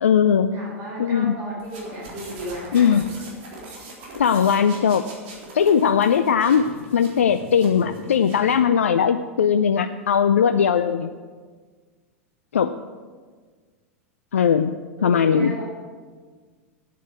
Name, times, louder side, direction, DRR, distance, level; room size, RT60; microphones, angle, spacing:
voice 1, 0.0-0.5 1.0-1.3 2.7-3.1 4.1-5.0 5.5-6.7 6.9-11.1 12.5-12.7 14.3-14.7 15.0-15.5, left 7 dB, 75° left, 11 dB, 0.4 m, -19 dB
voice 2, 0.5-2.9 15.0-15.6, right 1 dB, 35° right, -4 dB, 4.2 m, -35 dB
sound 1, 1.6-8.6, right 2 dB, 50° right, 3.8 m, -41 dB
9.4 x 8.3 x 8.3 m, 1.5 s
figure-of-eight pair, 90°, 7 cm